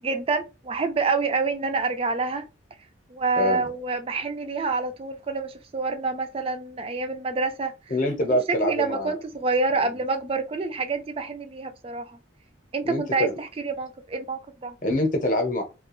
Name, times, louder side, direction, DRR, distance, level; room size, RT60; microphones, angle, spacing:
voice 1, 0.0-2.5 3.1-7.7 8.5-12.2 12.7-14.8, right 3 dB, 30° right, 0.3 m, -27 dB
voice 2, 3.4-3.7 7.9-9.1 9.8-9.9 12.8-13.3 14.8-15.6, left 1 dB, 45° left, 0.7 m, -25 dB
2.4 x 2.2 x 2.9 m
head